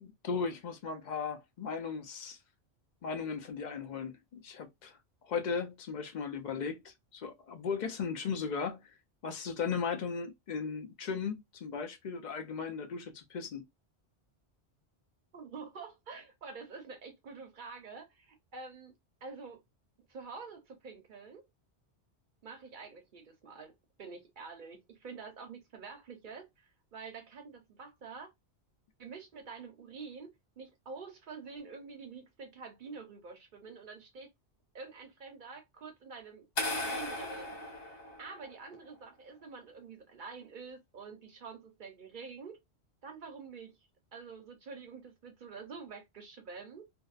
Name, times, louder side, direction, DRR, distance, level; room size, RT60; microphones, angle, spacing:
voice 1, 0.0-2.4 3.0-5.0 5.2-8.9 9.2-13.7, left 5 dB, 55° left, 0.6 m, -37 dB
voice 2, 15.3-18.9 19.2-19.6 20.1-21.5 22.4-28.3 29.0-30.3 30.6-34.3 34.7-36.5 36.8-42.6 43.0-43.8 44.1-46.9, right 4 dB, 55° right, 0.7 m, -47 dB
sound 1, 36.6-38.7, left 1 dB, 80° left, 1.5 m, -37 dB
2.7 x 2.1 x 2.3 m
omnidirectional pair, 1.1 m